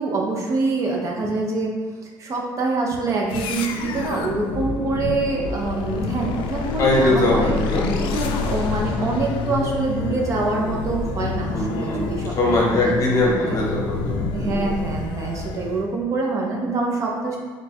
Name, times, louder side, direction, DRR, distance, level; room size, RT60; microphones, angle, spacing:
voice 1, 0.0-1.7 2.0-7.6 8.0-13.0 13.3-13.6 14.3-17.4, right 3 dB, 35° right, -1 dB, 0.6 m, -25 dB
sound 1, 3.3-15.9, left 4 dB, 70° left, 0.4 m, -28 dB
voice 2, 6.8-8.0 11.5-12.1 12.4-14.6, left 1 dB, 40° left, -3 dB, 0.9 m, -21 dB
3.2 x 2.3 x 4.1 m, 1.4 s
cardioid pair, 125°, 9 cm